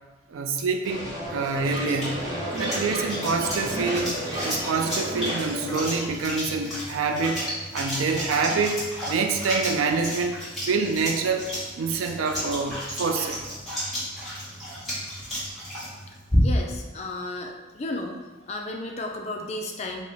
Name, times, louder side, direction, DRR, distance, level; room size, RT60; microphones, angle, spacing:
voice 1, 0.3-2.3 2.6-4.1 4.4-7.4 7.7-10.4 10.7-11.5 11.8-13.4, right 4 dB, 90° right, 5 dB, 0.4 m, -26 dB
sound 1, 0.8-6.1, right 1 dB, 20° right, 0.6 m, -32 dB
sound 2, 1.3-16.8, equal, ahead, 1.1 m, -32 dB
voice 2, 16.4-18.2 18.5-20.0, left 2 dB, 35° left, 2 dB, 0.3 m, -33 dB
3.8 x 2.1 x 3.3 m, 1.2 s
head